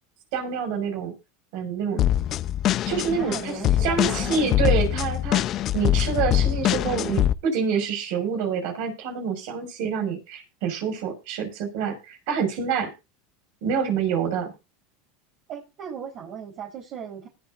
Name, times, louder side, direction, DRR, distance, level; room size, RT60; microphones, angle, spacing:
voice 1, 0.3-1.1 1.5-2.0 2.9-5.4 5.7-12.9 13.6-14.5, right 6 dB, 70° right, 4 dB, 5.9 m, -27 dB
sound 1, 2.0-7.3, left 12 dB, 45° left, 0.7 m, -23 dB
voice 2, 3.2-4.4 15.5-17.3, right 7 dB, 50° right, -1 dB, 4.5 m, -37 dB
19.5 x 8.2 x 2.7 m, 0.27 s
supercardioid pair, 110°, 0 cm